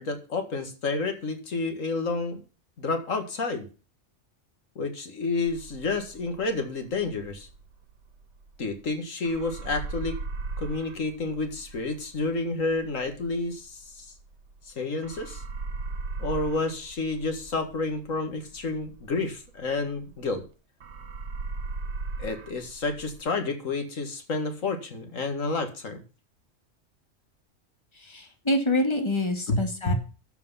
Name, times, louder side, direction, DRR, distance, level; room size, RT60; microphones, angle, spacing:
voice 1, 0.0-2.4 2.8-3.7 4.8-7.5 8.6-10.2 10.6-14.1 14.7-15.4 16.2-20.4 22.2-26.0 29.5-29.9, left 3 dB, 85° left, 7 dB, 2.2 m, -30 dB
sound 1, 5.5-8.9 9.2-14.7 15.0-20.5 20.8-23.2, right 3 dB, 60° right, 1.3 m, -38 dB
voice 2, 27.9-29.9, left 1 dB, 20° left, 5 dB, 2.1 m, -26 dB
12.0 x 7.6 x 5.7 m, 0.35 s
omnidirectional pair, 1.3 m